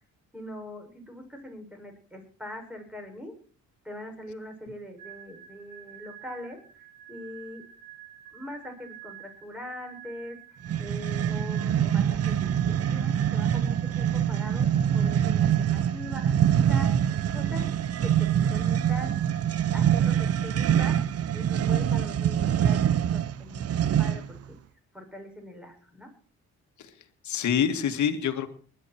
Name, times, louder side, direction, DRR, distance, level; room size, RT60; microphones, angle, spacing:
voice 1, 0.3-3.3 3.8-7.6 8.3-14.7 14.9-17.0 17.3-17.7 18.0-19.1 19.7-21.0 21.3-24.6 24.9-26.1, left 1 dB, 5° right, 3 dB, 7.0 m, -42 dB
sound 1, 5.0-20.6, right 11 dB, 70° right, 7.6 m, -48 dB
sound 2, 10.6-24.4, right 9 dB, 55° right, 0.9 m, -25 dB
voice 2, 15.7-16.1 26.8-28.5, left 8 dB, 70° left, 8 dB, 2.3 m, -28 dB
21.0 x 11.0 x 4.6 m, 0.43 s
cardioid pair, 90°, 30 cm